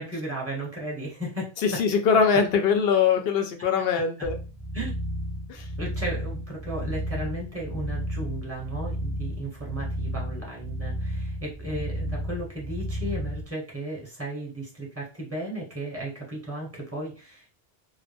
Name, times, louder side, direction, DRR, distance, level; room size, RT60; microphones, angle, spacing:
voice 1, 0.0-1.8 3.6-3.7 4.7-5.0 5.8-17.5, right 1 dB, 15° right, -3 dB, 1.0 m, -35 dB
voice 2, 1.6-4.4 5.5-5.6, left 6 dB, 65° left, 6 dB, 0.7 m, -22 dB
sound 1, 4.2-13.4, equal, 15° left, 0.5 m, -32 dB
2.4 x 2.0 x 3.3 m, 0.32 s
omnidirectional pair, 1.2 m